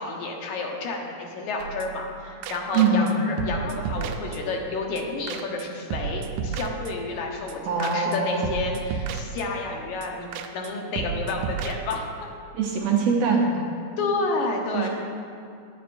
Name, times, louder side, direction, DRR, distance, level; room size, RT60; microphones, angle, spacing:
voice 1, 0.0-12.3 14.0-14.9, left 3 dB, 85° left, 1 dB, 2.4 m, -30 dB
sound 1, 1.6-2.1 2.4-3.1 3.4-4.7 5.0-5.1 5.3-5.7 5.9-7.2 7.5-7.6 7.8-8.2 8.4-9.7 10.0-10.1 10.3-10.7 11.0-12.2, right 6 dB, 90° right, 2.0 m, -32 dB
voice 2, 2.7-3.2 7.6-8.6 12.5-13.5 14.7-14.9, right 5 dB, 70° right, -1 dB, 1.9 m, -23 dB
9.6 x 9.2 x 2.5 m, 2.5 s
omnidirectional pair, 3.3 m